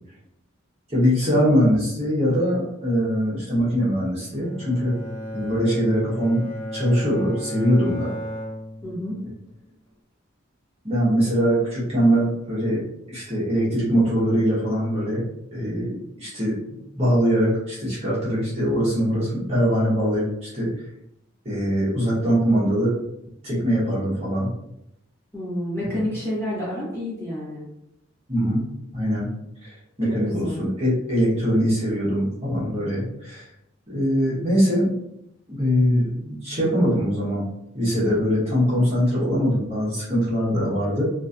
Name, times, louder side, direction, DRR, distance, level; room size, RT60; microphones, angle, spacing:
voice 1, 0.9-5.0 5.3-6.4 6.7-8.1 10.8-15.2 15.5-16.5 16.9-20.7 21.4-23.0 23.4-24.5 25.8-25.9 28.3-28.6 28.9-29.3 29.6-33.5 33.9-34.9 35.5-37.4 37.7-41.0, equal, 30° right, -9 dB, 1.1 m, -22 dB
Bowed string instrument, 4.3-9.5, equal, 80° left, 1.0 m, -35 dB
voice 2, 8.8-9.2 25.3-27.6 30.1-30.6, left 1 dB, 10° left, -9 dB, 1.2 m, -29 dB
2.9 x 2.6 x 2.5 m, 0.82 s
head